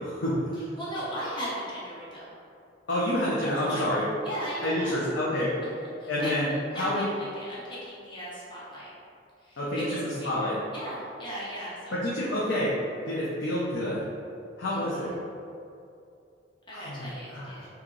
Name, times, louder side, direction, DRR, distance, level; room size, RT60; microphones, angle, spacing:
voice 1, 0.0-0.4 2.9-4.0 4.6-5.5 6.1-6.5 6.7-7.0 9.6-9.9 10.2-10.5 11.9-12.7 13.1-14.0 14.6-15.1 16.7-17.5, left 1 dB, 75° left, -7 dB, 0.6 m, -28 dB
voice 2, 0.5-2.4 3.4-3.9 4.2-5.2 5.6-5.7 6.0-6.3 6.7-8.9 9.4-12.0 14.7-15.1 16.7-17.7, equal, 25° left, -8 dB, 0.7 m, -38 dB
2.9 x 2.7 x 3.7 m, 2.5 s
head